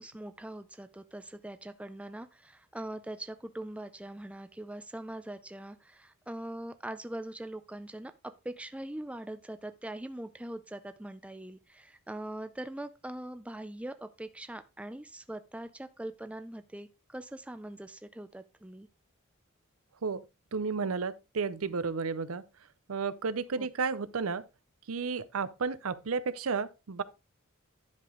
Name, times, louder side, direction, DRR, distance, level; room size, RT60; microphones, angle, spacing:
voice 1, 0.0-18.9 23.6-23.7, right 1 dB, 5° right, 0.4 m, -42 dB
voice 2, 20.5-22.4 22.9-24.4 24.9-27.0, right 5 dB, 80° right, 0.6 m, -32 dB
10.5 x 5.1 x 3.7 m
head